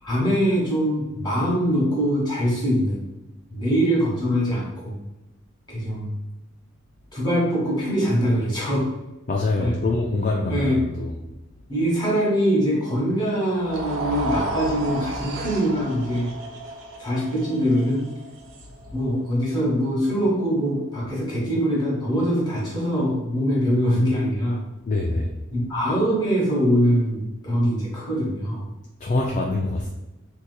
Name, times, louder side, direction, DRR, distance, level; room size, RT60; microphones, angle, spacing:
voice 1, 0.0-3.0 3.5-4.9 5.7-6.1 7.1-8.9 9.6-9.8 10.5-10.8 11.7-16.3 17.0-18.1 18.9-24.6 25.5-28.7, equal, 20° left, -6 dB, 1.2 m, -23 dB
voice 2, 9.3-10.7 11.0-11.1 24.9-25.3 29.0-29.9, left 2 dB, 35° left, 0 dB, 0.3 m, -24 dB
sound 1, 13.5-19.8, right 2 dB, 70° right, 0.6 m, -32 dB
3.7 x 2.9 x 2.2 m, 0.98 s
head